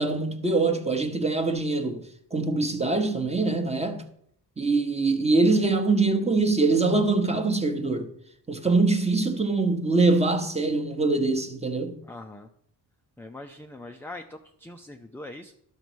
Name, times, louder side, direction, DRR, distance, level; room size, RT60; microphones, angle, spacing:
voice 1, 0.0-2.1 2.3-4.0 4.6-8.1 8.5-12.0, right 3 dB, 15° right, 0.9 m, -23 dB
voice 2, 12.0-12.5 13.2-15.5, left 2 dB, 5° left, 0.4 m, -42 dB
12.0 x 4.1 x 6.2 m
cardioid pair, 120°, 44 cm